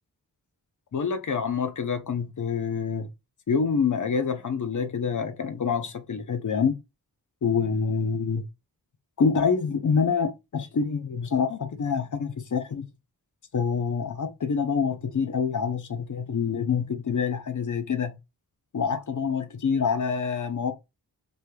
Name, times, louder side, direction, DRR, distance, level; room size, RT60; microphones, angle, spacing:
voice 1, 0.9-3.1 3.5-6.7 7.4-8.4 9.2-12.8 13.5-18.2 18.7-20.7, left 6 dB, 50° left, 0.7 m, -26 dB
3.4 x 2.7 x 2.3 m
cardioid pair, 60°, 40 cm